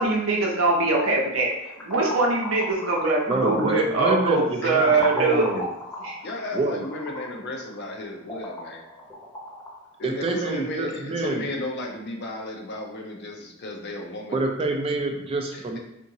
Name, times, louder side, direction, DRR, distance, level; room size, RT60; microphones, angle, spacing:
voice 1, 0.0-1.5 1.8-5.5 6.0-6.2, right 3 dB, 70° right, -1 dB, 0.7 m, -22 dB
sound 1, 1.5-10.5, left 1 dB, 10° left, 0.7 m, -36 dB
voice 2, 3.3-5.7 6.5-6.8 10.0-11.5 14.3-15.8, right 2 dB, 25° right, 3 dB, 0.3 m, -27 dB
voice 3, 4.6-5.1 6.2-8.9 10.0-14.4 15.5-15.8, left 1 dB, 55° left, 1 dB, 0.5 m, -34 dB
2.8 x 2.5 x 2.7 m, 0.88 s
head